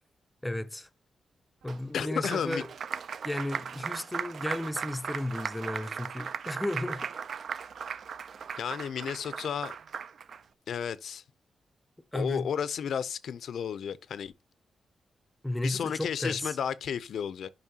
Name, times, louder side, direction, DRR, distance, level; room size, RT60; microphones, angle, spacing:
voice 1, 0.4-0.9 1.6-2.7 3.2-7.1 12.1-12.5 15.4-16.6, left 1 dB, 10° left, 0.5 m, -33 dB
Applause, 1.7-10.4, right 6 dB, 60° right, 0.4 m, -38 dB
voice 2, 1.9-2.6 8.6-9.7 10.7-11.2 12.1-14.3 15.6-17.5, left 8 dB, 75° left, 0.5 m, -32 dB
11.0 x 5.3 x 2.8 m
wide cardioid pair, 145°, 0 cm